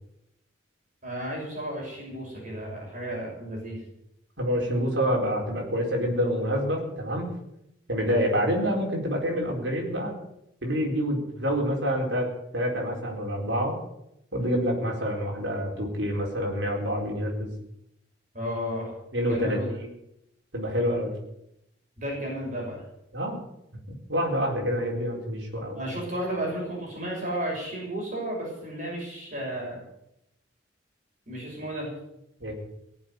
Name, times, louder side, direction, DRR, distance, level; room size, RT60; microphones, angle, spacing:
voice 1, 1.0-3.8 8.0-8.2 18.3-18.9 19.3-19.7 22.0-22.8 25.7-29.8 31.3-31.9, equal, 45° right, -2 dB, 6.2 m, -33 dB
voice 2, 4.4-7.3 7.9-10.2 10.6-13.8 14.3-17.5 19.1-19.6 20.5-21.1 23.1-23.4 24.1-25.9 32.4-32.5, equal, 75° right, -1 dB, 4.4 m, -27 dB
19.0 x 7.6 x 9.2 m, 0.82 s
head